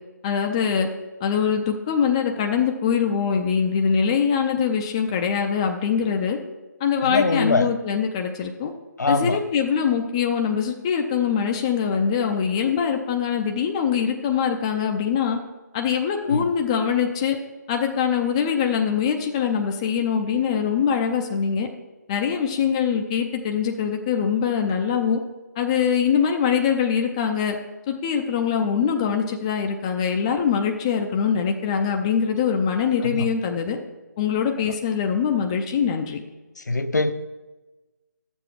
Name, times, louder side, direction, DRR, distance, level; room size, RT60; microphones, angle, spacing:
voice 1, 0.2-0.9 1.2-6.4 6.8-8.7 9.1-15.4 15.7-17.4 17.7-21.7 22.1-25.2 25.6-27.6 27.9-33.8 34.2-36.2, left 7 dB, 20° left, 3 dB, 0.5 m, -23 dB
voice 2, 7.0-7.7 9.0-9.4 16.2-16.5 33.0-33.3 36.7-37.1, left 3 dB, 65° left, 8 dB, 0.8 m, -22 dB
11.0 x 7.1 x 4.6 m, 1.1 s
figure-of-eight pair, 150°, 10 cm